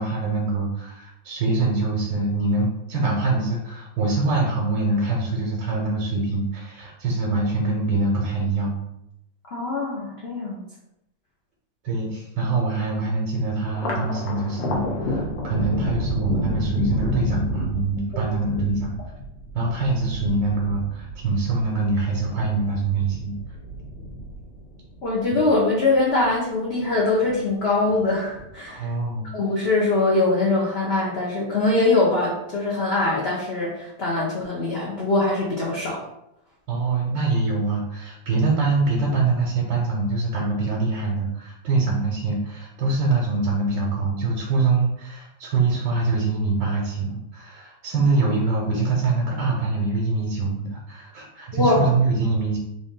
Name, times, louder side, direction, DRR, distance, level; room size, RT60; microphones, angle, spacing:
voice 1, 0.0-8.8 11.8-18.9 19.5-23.4 28.7-29.3 36.7-52.6, right 3 dB, 80° right, -2 dB, 1.4 m, -24 dB
voice 2, 9.5-10.6 18.1-18.2 25.0-28.9 29.3-36.0 51.5-51.8, left 2 dB, 55° left, -5 dB, 0.7 m, -22 dB
Thunder, 13.7-26.4 26.7-27.6 27.9-28.7, left 1 dB, 75° left, 1.5 m, -31 dB
3.9 x 2.5 x 3.7 m, 0.83 s
omnidirectional pair, 2.0 m